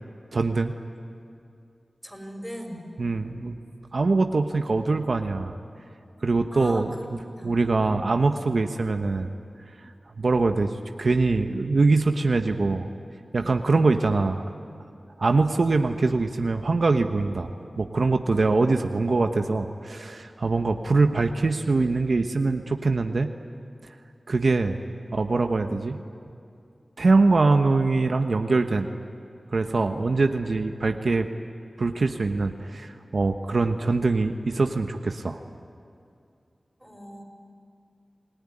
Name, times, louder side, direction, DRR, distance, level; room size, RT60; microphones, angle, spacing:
voice 1, 0.3-0.7 3.0-3.5 3.9-5.6 6.2-6.9 7.4-9.3 10.2-12.9 13.3-14.4 15.2-17.5 17.8-23.3 24.3-24.8 25.1-26.0 27.0-28.9 29.5-31.3 31.8-35.4, right 3 dB, 70° right, 6 dB, 1.1 m, -23 dB
voice 2, 2.0-2.9 6.5-7.5 13.6-13.8 18.3-18.8 24.9-25.3 25.5-25.6 29.6-29.9 36.8-37.2, equal, ahead, 2 dB, 6.1 m, -40 dB
27.5 x 18.0 x 10.0 m, 2.5 s
cardioid pair, 40°, 0 cm